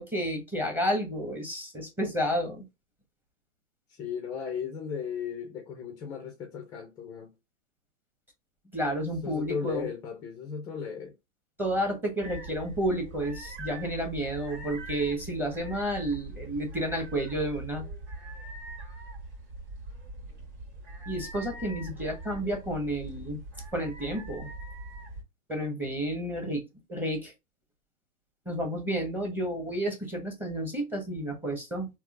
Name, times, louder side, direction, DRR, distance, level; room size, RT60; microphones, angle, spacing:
voice 1, 0.0-2.6 8.7-9.9 11.6-17.9 21.1-23.4 23.7-24.5 25.5-26.6 26.9-27.3 28.4-31.9, equal, 5° right, 1.0 m, -31 dB
voice 2, 3.9-7.3 9.2-11.2, left 7 dB, 10° left, 0.4 m, -36 dB
sound 1, 12.2-25.2, right 2 dB, 70° right, 2.2 m, -42 dB
3.6 x 2.9 x 2.3 m
hypercardioid pair, 135°, 36 cm